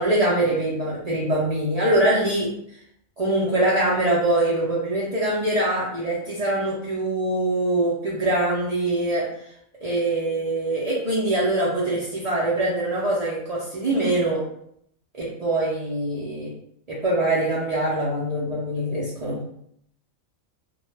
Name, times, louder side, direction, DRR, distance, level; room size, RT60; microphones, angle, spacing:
voice 1, 0.0-2.5 3.2-9.3 9.8-14.4 15.1-16.5 16.9-19.4, right 1 dB, 60° right, -7 dB, 0.4 m, -23 dB
2.2 x 2.2 x 3.1 m, 0.70 s
omnidirectional pair, 1.4 m